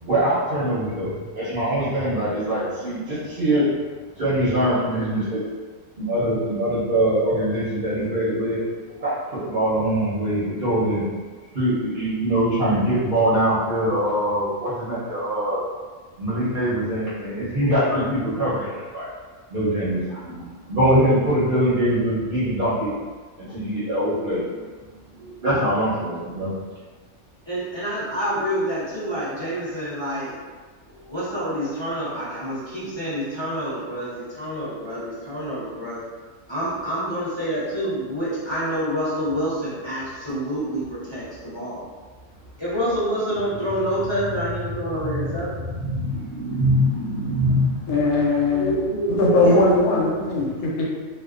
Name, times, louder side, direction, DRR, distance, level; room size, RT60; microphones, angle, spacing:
voice 1, 0.0-3.7 4.1-5.4 6.0-8.6 9.0-11.0 11.5-15.6 16.2-19.1 19.5-22.9 23.4-24.7 25.2-26.5 45.0-45.4 45.7-47.8, right 1 dB, 50° right, -10 dB, 0.8 m, -23 dB
voice 2, 27.5-30.3 31.1-36.0 36.5-41.9 42.6-45.7 48.5-50.2, equal, 30° left, -12 dB, 0.5 m, -27 dB
voice 3, 47.9-48.8 49.2-50.9, left 2 dB, 90° left, -3 dB, 1.1 m, -19 dB
2.5 x 2.2 x 2.4 m, 1.4 s
omnidirectional pair, 1.5 m